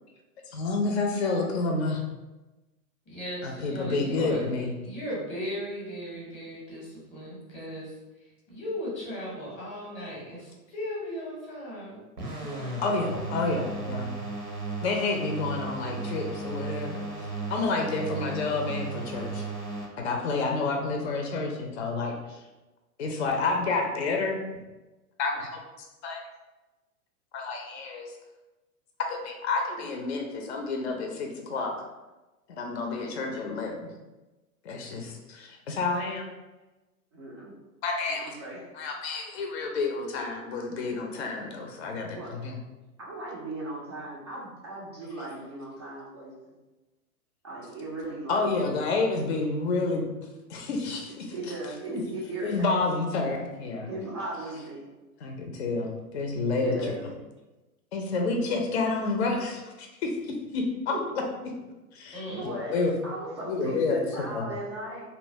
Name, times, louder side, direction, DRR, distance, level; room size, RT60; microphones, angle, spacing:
voice 1, 0.5-2.0 3.4-4.7 12.8-14.2 14.8-19.4 20.0-22.4 23.0-24.4 25.2-25.5 26.0-26.2 27.5-28.1 29.2-31.7 32.6-33.9 34.6-36.3 37.8-38.4 38.7-42.6 48.3-50.1 50.5-51.3 51.9-52.0 52.4-53.9 55.2-56.9 57.9-61.2 61.9-62.9 63.4-64.5, left 3 dB, 45° left, 2 dB, 0.5 m, -29 dB
voice 2, 3.1-4.4 4.8-7.9 8.5-12.0 12.4-13.2 13.6-13.7 62.1-62.5, equal, 15° left, -5 dB, 0.7 m, -37 dB
sound 1, 12.2-19.9, right 3 dB, 90° right, 0.8 m, -35 dB
voice 3, 37.1-37.5 38.1-38.6 42.1-42.3 43.0-46.5 47.4-48.5 51.3-53.0 53.9-54.9 56.6-57.1 60.9-61.0 62.3-65.0, right 2 dB, 20° right, -6 dB, 0.3 m, -37 dB
2.8 x 2.2 x 2.7 m, 1.1 s
figure-of-eight pair, 110°, 46 cm